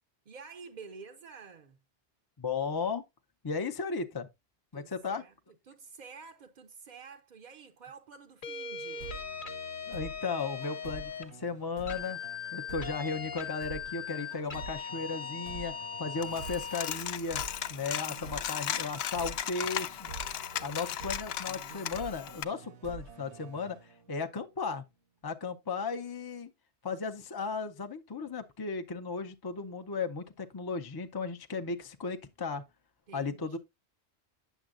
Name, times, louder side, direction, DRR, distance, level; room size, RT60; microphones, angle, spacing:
voice 1, 0.3-1.8 4.7-5.3 5.7-9.1 33.1-33.6, right 5 dB, 50° right, 0.6 m, -50 dB
voice 2, 2.4-3.0 3.4-4.3 4.7-5.2 9.9-12.2 12.5-17.4 17.7-20.1 20.6-24.8 25.2-26.5 26.8-32.6 33.1-33.6, left 4 dB, 30° left, 0.5 m, -35 dB
sound 1, 8.4-11.3 11.9-17.0, left 6 dB, 50° left, 1.1 m, -40 dB
House track (intro), 9.0-24.5, right 4 dB, 75° right, 1.2 m, -47 dB
Coin (dropping), 16.2-22.4, left 10 dB, 70° left, 0.8 m, -36 dB
9.1 x 7.0 x 2.4 m
omnidirectional pair, 1.2 m